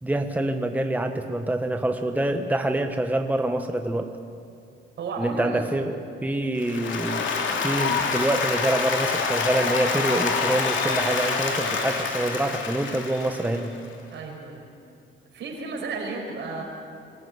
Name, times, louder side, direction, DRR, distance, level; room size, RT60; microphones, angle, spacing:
voice 1, 0.0-4.1 5.2-7.3 7.6-13.7, right 1 dB, 10° right, 5 dB, 1.3 m, -26 dB
voice 2, 5.0-5.6 14.1-14.7 15.3-16.6, right 4 dB, 70° right, 0 dB, 5.8 m, -33 dB
Applause, 6.6-13.8, left 5 dB, 70° left, 3.0 m, -26 dB
24.5 x 14.5 x 9.8 m, 2.5 s
cardioid pair, 90°, 20 cm